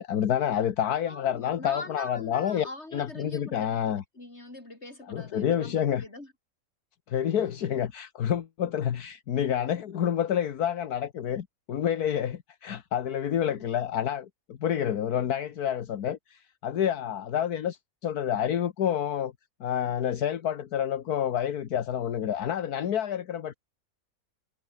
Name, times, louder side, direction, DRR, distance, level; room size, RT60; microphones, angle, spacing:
voice 1, 0.0-2.7 2.9-4.0 5.1-6.0 7.1-19.3 19.6-23.5, left 9 dB, 75° left, 1.7 m, -28 dB
voice 2, 1.1-6.3 13.5-13.7, left 2 dB, 45° left, 6.2 m, -43 dB
omnidirectional pair, 1.6 m